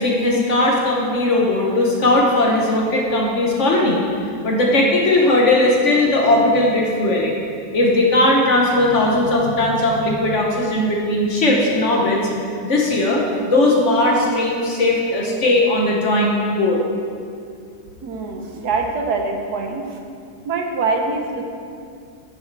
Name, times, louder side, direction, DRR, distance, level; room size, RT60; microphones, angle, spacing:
voice 1, 0.0-4.0 4.4-7.4 7.7-12.2 12.6-16.8, left 1 dB, 50° left, -1 dB, 1.2 m, -18 dB
voice 2, 18.0-20.0 20.4-21.5, right 3 dB, 70° right, 2 dB, 1.4 m, -24 dB
9.6 x 6.1 x 4.7 m, 2.4 s
omnidirectional pair, 1.8 m